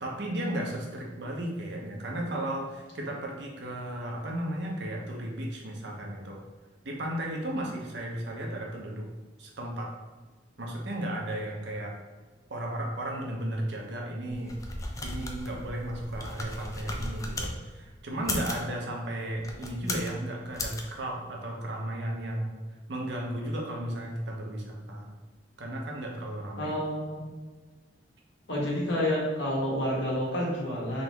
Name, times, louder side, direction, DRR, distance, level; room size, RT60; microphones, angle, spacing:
voice 1, 0.0-6.4 6.8-9.1 9.4-9.9 10.6-11.9 12.5-14.5 15.0-22.5 22.9-25.1 25.6-26.7, right 1 dB, 65° right, -1 dB, 0.8 m, -34 dB
sound 1, 14.3-17.5 18.1-18.7 19.4-20.1 20.5-20.8, left 2 dB, 20° left, 0.4 m, -36 dB
voice 2, 26.6-27.2 28.5-31.0, equal, 80° left, -5 dB, 1.5 m, -29 dB
3.9 x 2.9 x 3.4 m, 1.3 s
head